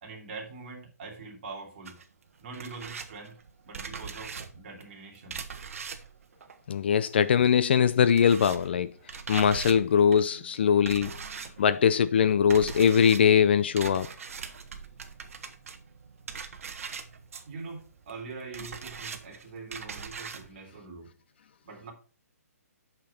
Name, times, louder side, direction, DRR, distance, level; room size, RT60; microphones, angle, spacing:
voice 1, 0.0-2.0 2.4-3.4 3.6-5.4 17.5-21.1 21.6-21.9, right 4 dB, 35° right, 3.1 m, -43 dB
sound 1, 1.9-7.4 7.6-20.5, right 6 dB, 60° right, 1.4 m, -41 dB
voice 2, 6.7-8.9 9.3-11.1 11.6-14.1, left 7 dB, 40° left, 0.4 m, -22 dB
8.6 x 5.8 x 4.4 m
hypercardioid pair, 165°, 9 cm